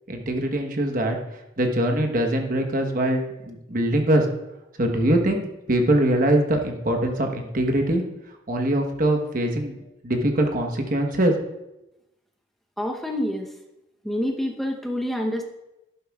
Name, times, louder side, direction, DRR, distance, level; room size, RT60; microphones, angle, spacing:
voice 1, 0.1-1.2 1.6-4.3 4.8-8.0 8.5-11.3, right 1 dB, 45° right, 3 dB, 1.1 m, -23 dB
voice 2, 12.8-13.5 14.0-15.4, equal, ahead, 1 dB, 0.8 m, -27 dB
11.5 x 11.0 x 2.4 m, 0.94 s
head